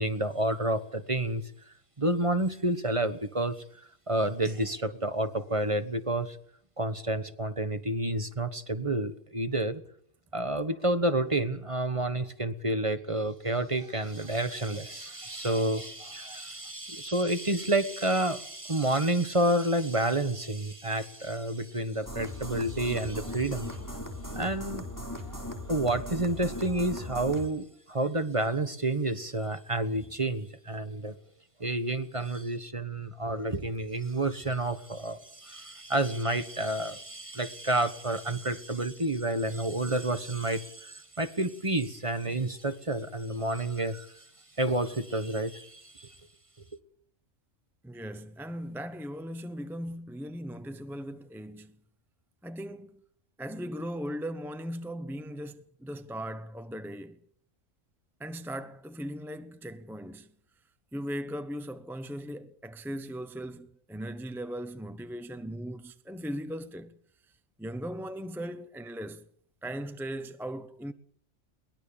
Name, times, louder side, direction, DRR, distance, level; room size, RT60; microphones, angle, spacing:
voice 1, 0.0-1.4 2.0-3.6 4.1-6.4 6.8-9.8 10.3-23.8 24.3-24.8 25.3-25.4 25.7-31.2 31.6-44.2 44.6-46.1, right 1 dB, 25° right, 1.4 m, -29 dB
sound 1, 22.1-27.5, left 1 dB, 15° left, 3.5 m, -38 dB
voice 2, 47.8-51.8 52.4-53.0 53.4-57.2 58.2-60.3 60.9-66.9 67.6-69.3 69.6-70.9, equal, ahead, 0.9 m, -38 dB
22.5 x 20.0 x 7.0 m
omnidirectional pair, 1.3 m